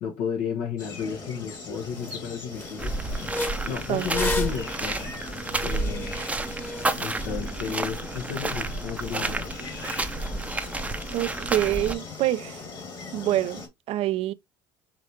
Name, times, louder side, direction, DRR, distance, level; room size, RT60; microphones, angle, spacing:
voice 1, 0.0-3.0 3.7-5.1 5.6-6.2 6.9-9.6, left 7 dB, 80° left, 1.1 m, -33 dB
sound 1, 0.8-13.7, left 4 dB, 35° left, 1.7 m, -40 dB
sound 2, 1.5-1.6 2.0-2.2 2.5-7.3, left 2 dB, 15° left, 1.1 m, -34 dB
sound 3, 2.8-11.9, right 2 dB, 10° right, 0.6 m, -31 dB
voice 2, 11.1-12.6 13.1-14.3, right 14 dB, 55° right, 0.4 m, -26 dB
5.0 x 3.3 x 2.8 m
supercardioid pair, 100°, 12 cm